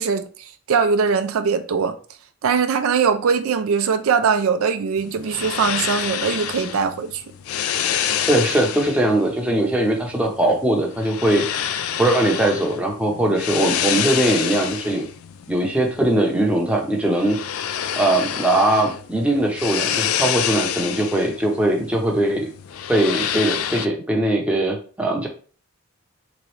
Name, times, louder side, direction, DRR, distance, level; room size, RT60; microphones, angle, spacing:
voice 1, 0.0-1.9 2.4-7.2, right 6 dB, 70° right, 0.4 m, -21 dB
sound 1, 5.0-23.9, left 9 dB, 75° left, 0.3 m, -28 dB
voice 2, 8.3-15.1 15.5-17.4 18.0-22.5 22.9-25.3, right 1 dB, 5° right, 0.7 m, -20 dB
3.6 x 3.0 x 3.1 m
head